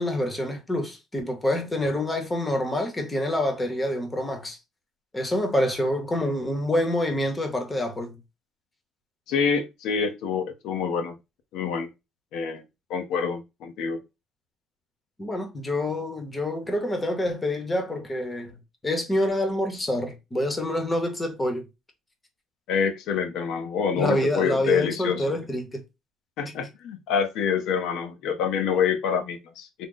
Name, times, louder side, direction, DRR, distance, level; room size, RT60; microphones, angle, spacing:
voice 1, 0.0-4.6 5.1-8.2 15.2-21.7 24.0-25.8, left 1 dB, 15° left, 0.7 m, -27 dB
voice 2, 9.3-11.2 11.5-11.9 12.3-12.6 12.9-14.0 22.7-25.2 26.4-29.9, left 6 dB, 90° left, 0.7 m, -26 dB
3.7 x 2.0 x 3.7 m
cardioid pair, 165°, 0 cm